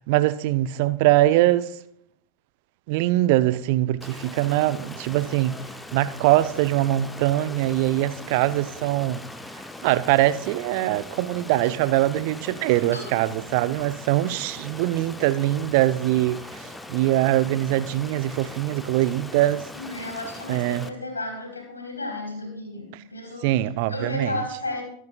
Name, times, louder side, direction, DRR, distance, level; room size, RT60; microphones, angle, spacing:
voice 1, 0.1-1.7 2.9-5.5 5.9-9.2 9.8-19.7 20.5-20.8 23.4-24.4, right 15 dB, 45° right, 0.5 m, -22 dB
Stream, 4.0-20.9, left 2 dB, 5° left, 0.7 m, -41 dB
voice 2, 12.7-13.0 19.7-23.6 23.9-24.8, left 2 dB, 80° left, 4.0 m, -33 dB
23.0 x 9.4 x 2.4 m
figure-of-eight pair, 90°, 0 cm